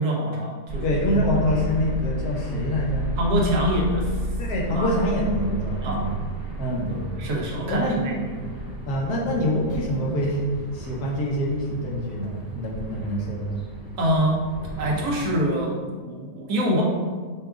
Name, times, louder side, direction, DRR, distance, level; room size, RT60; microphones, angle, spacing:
voice 1, 0.0-1.0 3.2-4.2 4.7-5.0 5.8-6.0 6.9-8.2 14.0-14.4 14.8-16.8, equal, 85° right, -2 dB, 1.4 m, -25 dB
sound 1, 0.7-15.4, right 1 dB, 50° right, 1.6 m, -33 dB
voice 2, 0.8-3.1 4.4-6.3 6.6-7.3 7.7-8.2 8.9-10.4 10.7-13.6, equal, 80° left, -3 dB, 1.4 m, -25 dB
5.9 x 2.3 x 3.6 m, 1.6 s
omnidirectional pair, 1.6 m